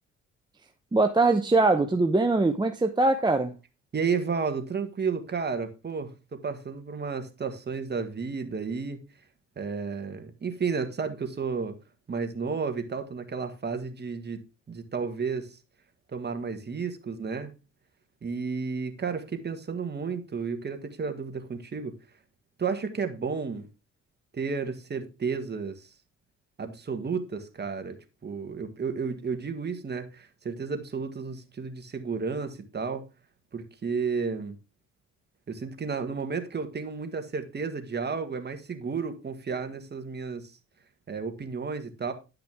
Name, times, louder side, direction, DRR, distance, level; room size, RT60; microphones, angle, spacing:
voice 1, 0.9-3.5, right 3 dB, 15° right, 0.8 m, -22 dB
voice 2, 3.9-9.0 9.5-11.8 12.1-14.4 14.7-15.6 16.1-17.5 18.2-21.9 22.6-23.7 24.3-25.9 26.6-28.0 28.2-33.0 33.5-34.5 35.5-40.5 41.1-42.1, right 5 dB, 35° right, 1.6 m, -32 dB
10.5 x 5.9 x 3.5 m
cardioid pair, 90°, 30 cm